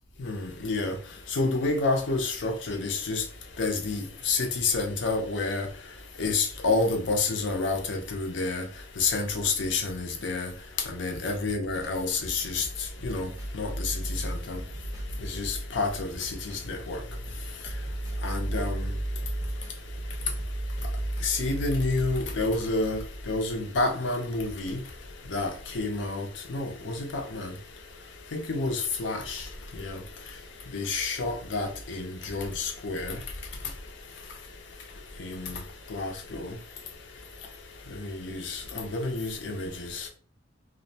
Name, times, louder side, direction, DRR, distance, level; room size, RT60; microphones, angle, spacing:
voice 1, 0.2-1.0 1.3-3.2 3.6-5.7 6.2-8.7 9.0-10.5 10.9-14.6 15.2-17.0 18.2-19.0 21.2-24.8 25.3-27.5 28.3-30.0 30.7-33.2 35.2-35.6 35.9-36.6 37.9-40.1, left 3 dB, 70° left, 0.5 m, -29 dB
sound 1, 11.4-13.6 14.2-16.6 17.1-19.7 20.4-23.1, equal, 15° right, 0.5 m, -48 dB
2.5 x 2.1 x 2.7 m
head